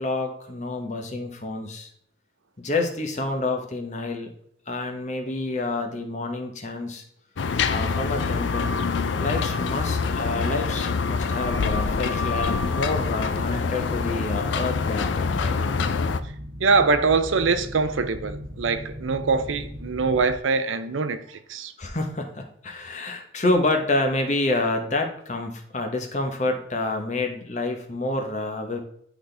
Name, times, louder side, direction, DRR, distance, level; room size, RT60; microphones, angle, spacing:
voice 1, 0.0-1.9 2.6-4.3 4.7-7.0 7.7-8.7 9.2-15.6 21.8-28.8, left 2 dB, 35° left, 0.9 m, -28 dB
sound 1, 7.4-16.2, left 5 dB, 75° left, 0.4 m, -25 dB
sound 2, 13.0-20.4, equal, 30° right, 1.1 m, -37 dB
voice 2, 16.6-21.7, right 4 dB, 85° right, 0.6 m, -23 dB
10.5 x 4.0 x 3.3 m
head